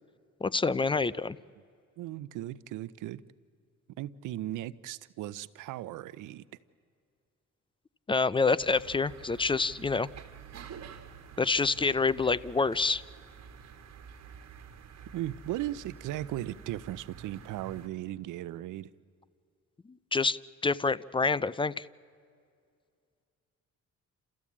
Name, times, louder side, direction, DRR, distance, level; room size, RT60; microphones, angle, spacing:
voice 1, 0.4-1.4 8.1-10.1 11.4-13.0 20.1-20.4 20.6-21.9, left 4 dB, 15° left, 20 dB, 0.5 m, -27 dB
voice 2, 2.0-3.2 4.0-6.5 15.1-18.9, right 14 dB, 85° right, 18 dB, 0.7 m, -37 dB
sound 1, 8.6-17.9, right 6 dB, 60° right, 1.8 m, -49 dB
29.5 x 14.0 x 8.5 m, 2.3 s
cardioid pair, 90°, 30 cm